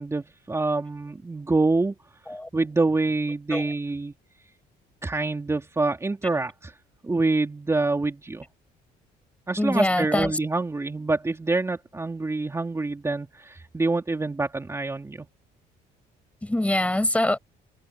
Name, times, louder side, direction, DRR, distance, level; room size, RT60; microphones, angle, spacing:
voice 1, 0.0-1.9 2.5-4.1 5.0-6.7 7.0-8.5 9.5-15.3, right 3 dB, 15° right, 3.1 m, -26 dB
voice 2, 9.6-10.3 16.4-17.4, left 1 dB, 10° left, 4.7 m, -24 dB
cardioid pair, 110°, 17 cm